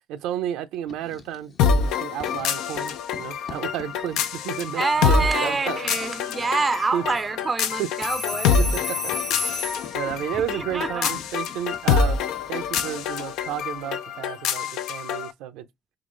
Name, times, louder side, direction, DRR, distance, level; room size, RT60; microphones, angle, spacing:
voice 1, 0.1-5.8 6.9-7.0 7.8-7.9 8.5-9.5 9.9-12.2 12.5-15.7, right 10 dB, 85° right, 0.5 m, -32 dB
Writing, 0.7-1.9 2.2-13.1, left 5 dB, 50° left, 1.0 m, -47 dB
sound 1, 1.6-15.3, left 6 dB, 85° left, 0.5 m, -26 dB
voice 2, 4.7-8.6 9.7-9.8 10.5-11.1, right 4 dB, 30° right, 0.4 m, -26 dB
sound 2, 8.0-10.0 12.4-12.7, left 3 dB, 25° left, 1.1 m, -31 dB
3.8 x 3.1 x 3.7 m
cardioid pair, 95°, 0 cm